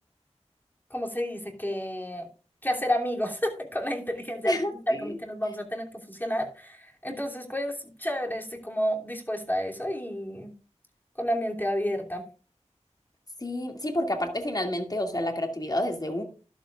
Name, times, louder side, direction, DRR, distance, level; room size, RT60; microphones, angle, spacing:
voice 1, 0.9-2.3 2.6-4.6 4.9-10.5 11.2-12.2, equal, 15° left, 1 dB, 2.9 m, -30 dB
voice 2, 4.4-5.2 13.4-16.2, left 1 dB, 35° left, 4 dB, 2.3 m, -29 dB
12.5 x 11.5 x 2.4 m, 0.35 s
wide cardioid pair, 50°, 12 cm